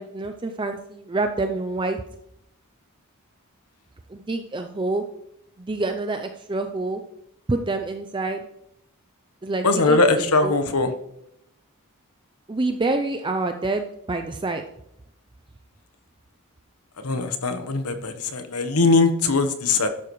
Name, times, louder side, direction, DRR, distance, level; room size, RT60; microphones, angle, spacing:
voice 1, 0.0-2.0 4.1-5.0 5.6-7.0 7.5-8.4 9.4-10.6 12.5-14.6, right 2 dB, 20° right, 6 dB, 0.5 m, -27 dB
voice 2, 9.6-10.9 17.0-19.9, left 3 dB, 80° left, 8 dB, 1.1 m, -21 dB
12.0 x 11.5 x 3.1 m, 0.78 s
head